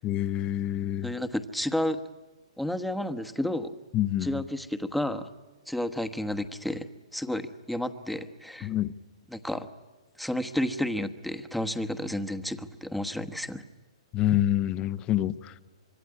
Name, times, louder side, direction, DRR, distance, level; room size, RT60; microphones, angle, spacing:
voice 1, 0.0-1.1 3.9-4.4 8.6-8.9 14.1-15.6, left 13 dB, 25° left, 15 dB, 0.8 m, -27 dB
voice 2, 1.0-2.0 2.6-3.7 4.2-5.3 5.7-6.9 7.1-8.7 9.3-9.7 10.2-13.6, left 1 dB, ahead, 7 dB, 1.1 m, -31 dB
25.0 x 23.5 x 9.7 m, 1.2 s
hypercardioid pair, 135°, 3 cm